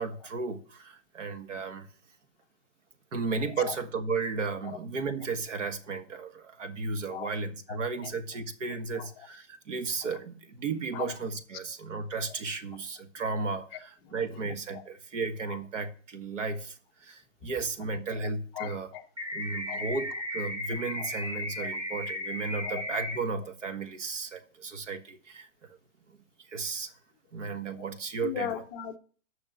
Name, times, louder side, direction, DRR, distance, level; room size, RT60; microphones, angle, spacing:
voice 1, 0.0-1.9 3.1-18.9 19.3-25.8 26.1-27.0 27.3-28.5, right 4 dB, 75° right, 1.6 m, -34 dB
voice 2, 18.5-19.0 19.7-19.9 21.0-21.1 21.6-21.7 22.6-22.8 28.2-29.0, left 10 dB, 10° left, 0.5 m, -37 dB
sound 1, 19.2-23.2, left 1 dB, 10° right, 1.4 m, -35 dB
8.6 x 6.0 x 7.9 m
hypercardioid pair, 150°, 37 cm